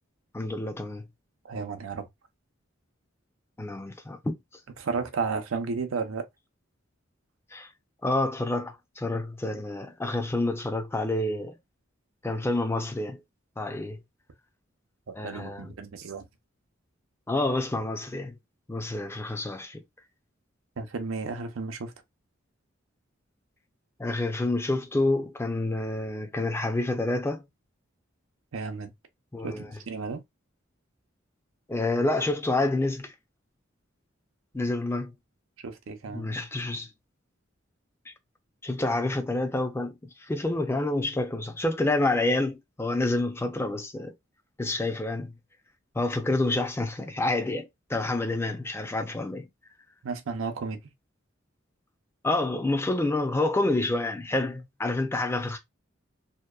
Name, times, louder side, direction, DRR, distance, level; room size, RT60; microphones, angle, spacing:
voice 1, 0.3-1.1 3.6-4.3 7.5-7.7 8.0-11.6 12.2-13.2 13.6-14.0 15.1-15.7 17.3-18.3 18.7-19.8 24.0-27.4 29.3-29.7 31.7-33.1 34.5-35.1 36.1-36.9 38.6-39.9 40.3-44.1 44.6-45.3 46.0-49.5 52.2-55.6, left 2 dB, 10° left, 0.4 m, -28 dB
voice 2, 1.4-2.1 4.8-6.3 15.1-16.2 20.8-21.9 28.5-28.9 29.4-30.2 35.6-36.3 50.0-50.8, right 4 dB, 85° right, 0.6 m, -33 dB
2.8 x 2.1 x 2.2 m
head